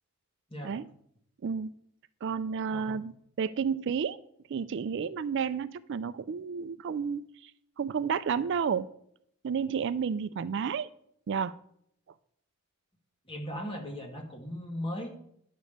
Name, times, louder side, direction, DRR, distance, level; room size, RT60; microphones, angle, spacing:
voice 1, 2.2-3.1 3.4-4.2 4.5-7.5 7.8-8.9 9.4-10.9 11.3-11.5, right 6 dB, 55° right, 14 dB, 0.4 m, -31 dB
voice 2, 2.7-3.0 13.3-15.2, equal, 25° left, 2 dB, 1.7 m, -38 dB
10.5 x 5.2 x 6.5 m, 0.69 s
head